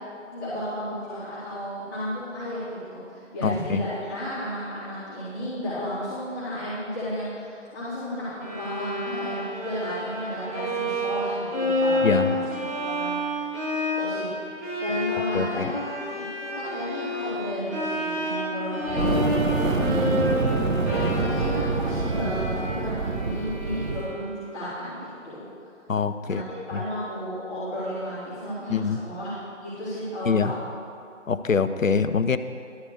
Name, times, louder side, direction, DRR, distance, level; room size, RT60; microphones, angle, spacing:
voice 1, 0.3-12.5 12.8-13.3 13.6-14.3 14.8-25.5 26.2-29.3 29.6-30.5, equal, 15° left, -15 dB, 1.9 m, -33 dB
voice 2, 3.4-3.8 12.0-12.3 15.3-15.7 25.9-26.4 28.7-29.0 30.3-30.5 31.3-32.4, left 5 dB, 85° left, 11 dB, 0.6 m, -24 dB
Bowed string instrument, 8.4-24.5, left 1 dB, 10° right, 1.0 m, -29 dB
Fire, 18.8-24.1, right 3 dB, 80° right, 1.0 m, -26 dB
11.5 x 4.7 x 8.1 m, 2.4 s
figure-of-eight pair, 150°, 38 cm